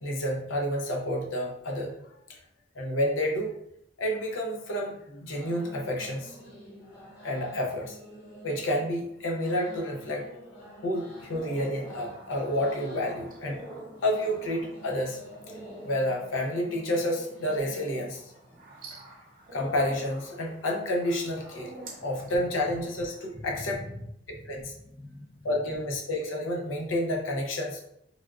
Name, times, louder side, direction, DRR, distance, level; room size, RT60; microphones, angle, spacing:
voice 1, 0.0-2.0 2.3-2.4 2.7-3.5 4.0-6.4 7.2-8.0 8.4-10.3 10.8-13.6 14.0-15.2 15.8-18.2 19.5-21.7 22.0-23.8 24.5-24.7 25.4-27.8, left 1 dB, 85° left, 1 dB, 0.6 m, -29 dB
sound 1, 4.8-17.6, equal, 55° left, 1.1 m, -49 dB
sound 2, 11.1-23.2, right 1 dB, 45° right, 0.7 m, -47 dB
voice 2, 21.9-22.4 23.3-25.5, left 1 dB, 20° left, -3 dB, 0.5 m, -44 dB
3.4 x 2.3 x 2.3 m, 0.75 s
head